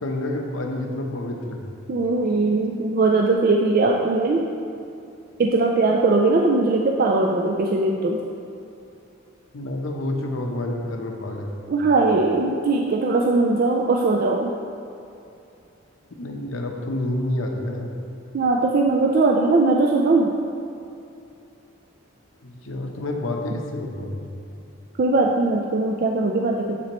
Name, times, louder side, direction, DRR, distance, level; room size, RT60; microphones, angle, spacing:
voice 1, 0.0-1.6 9.5-11.5 16.2-17.9 22.4-24.2, left 1 dB, 80° left, 2 dB, 0.8 m, -28 dB
voice 2, 1.9-4.5 5.4-8.2 11.7-14.5 18.3-20.3 25.0-26.8, right 3 dB, 45° right, 0 dB, 0.4 m, -20 dB
11.0 x 4.2 x 3.0 m, 2.7 s
head